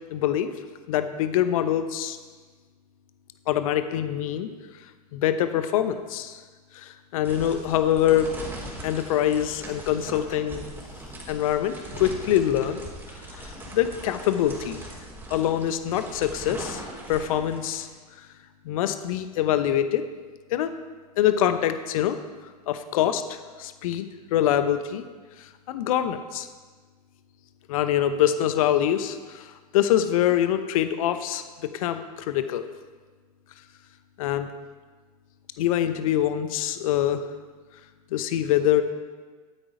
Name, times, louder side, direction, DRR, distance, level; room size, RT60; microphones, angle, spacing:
voice 1, 0.1-0.5 0.9-2.2 3.5-4.5 5.1-6.4 6.7-8.3 8.8-10.6 11.3-12.8 13.4-14.8 15.3-16.8 17.1-17.9 18.2-18.3 18.6-20.0 20.5-20.7 21.2-22.2 22.7-23.2 23.6-25.0 25.4-26.5 27.7-31.4 31.7-32.6 34.2-34.5 35.6-37.2 38.1-38.8, left 11 dB, 60° left, 10 dB, 0.9 m, -24 dB
sound 1, 7.2-17.8, right 1 dB, 10° right, 3.7 m, -40 dB
12.5 x 8.8 x 4.9 m, 1.4 s
hypercardioid pair, 95°, 20 cm